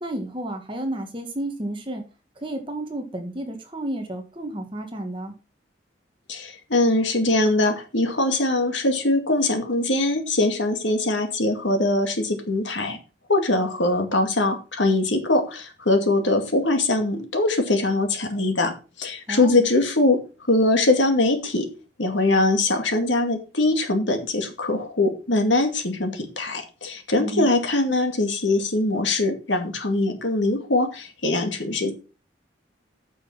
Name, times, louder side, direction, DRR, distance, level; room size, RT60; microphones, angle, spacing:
voice 1, 0.0-2.1 2.4-5.3 19.3-19.6 27.2-27.5, right 1 dB, 25° right, 4 dB, 1.8 m, -31 dB
voice 2, 6.3-13.0 13.3-20.2 20.5-21.7 22.0-31.9, left 2 dB, 80° left, 5 dB, 2.3 m, -22 dB
8.9 x 6.3 x 5.7 m, 0.34 s
head